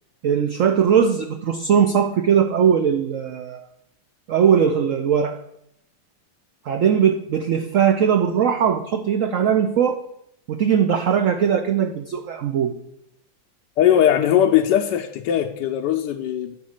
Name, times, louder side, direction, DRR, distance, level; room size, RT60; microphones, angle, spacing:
voice 1, 0.2-3.6 4.3-5.4 6.7-10.0 10.5-12.7, right 8 dB, 75° right, 6 dB, 0.7 m, -19 dB
voice 2, 13.8-16.5, left 10 dB, 70° left, 3 dB, 1.2 m, -19 dB
11.0 x 4.2 x 6.4 m, 0.78 s
omnidirectional pair, 2.1 m